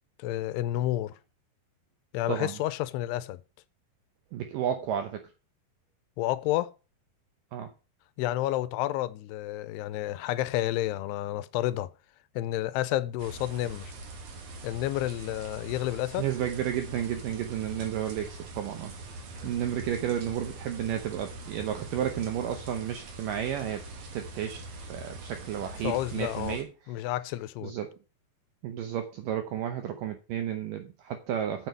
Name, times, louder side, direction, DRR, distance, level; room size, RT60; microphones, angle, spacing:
voice 1, 0.2-1.2 2.1-3.4 6.2-6.7 8.2-11.9 12.4-13.9 14.6-16.3 25.8-26.6 26.9-27.7, left 15 dB, 85° left, 2.6 m, -30 dB
voice 2, 2.3-2.6 4.3-5.3 7.5-7.7 16.2-18.9 19.4-23.8 24.1-26.7 27.6-27.9 28.6-31.7, right 10 dB, 80° right, 1.9 m, -32 dB
sound 1, 13.2-26.6, right 2 dB, 60° right, 1.7 m, -43 dB
8.0 x 6.5 x 5.4 m
omnidirectional pair, 4.8 m